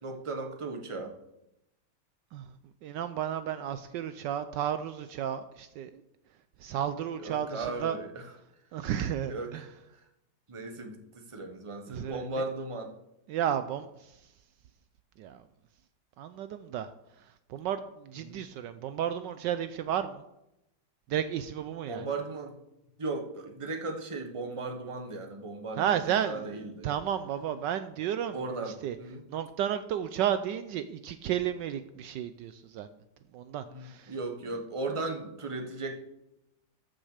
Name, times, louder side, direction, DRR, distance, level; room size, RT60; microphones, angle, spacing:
voice 1, 0.0-1.1 7.2-8.2 9.3-9.7 10.5-11.0 11.3-12.9 18.2-18.4 21.9-22.5 23.0-26.9 28.3-29.2 33.7-36.0, right 3 dB, 20° right, 4 dB, 1.1 m, -36 dB
voice 2, 2.8-6.0 6.6-8.0 8.7-9.7 11.9-12.3 13.3-14.1 15.2-15.4 16.2-16.9 17.5-20.2 21.1-22.1 25.8-29.0 29.3-32.9 33.3-34.1, right 9 dB, 75° right, 11 dB, 1.2 m, -32 dB
13.5 x 6.4 x 5.0 m, 0.86 s
omnidirectional pair, 2.1 m